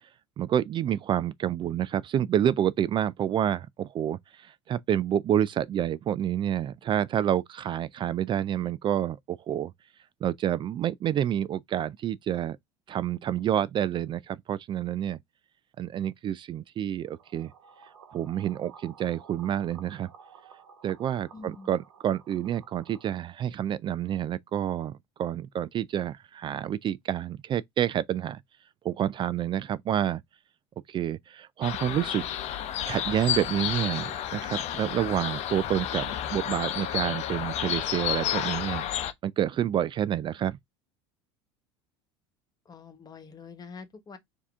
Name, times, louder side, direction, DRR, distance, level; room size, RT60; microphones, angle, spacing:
voice 1, 0.4-9.7 10.2-12.6 12.9-15.2 15.8-17.5 18.1-20.1 20.8-28.4 28.8-30.2 30.9-32.3 32.9-38.8 39.2-40.6, right 10 dB, 35° right, 0.3 m, -28 dB
sound 1, 17.1-23.1, right 6 dB, 90° right, 1.0 m, -53 dB
voice 2, 21.3-21.7 42.6-44.2, left 4 dB, 25° left, 1.3 m, -45 dB
sound 2, 31.6-39.1, left 10 dB, 50° left, 0.7 m, -31 dB
4.7 x 2.8 x 3.5 m
hypercardioid pair, 85°, 14 cm